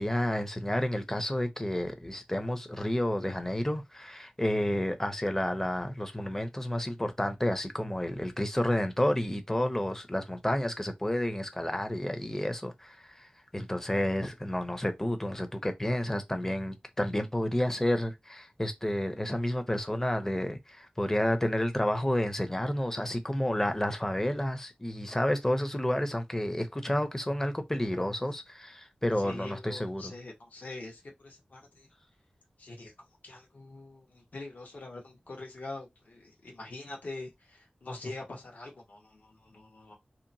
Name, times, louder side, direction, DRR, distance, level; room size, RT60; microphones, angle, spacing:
voice 1, 0.0-30.1, left 1 dB, 15° left, 0.6 m, -30 dB
voice 2, 29.2-31.9 32.6-32.9 33.2-40.0, left 2 dB, 70° left, 1.1 m, -44 dB
2.8 x 2.2 x 2.6 m
wide cardioid pair, 65°, 3 cm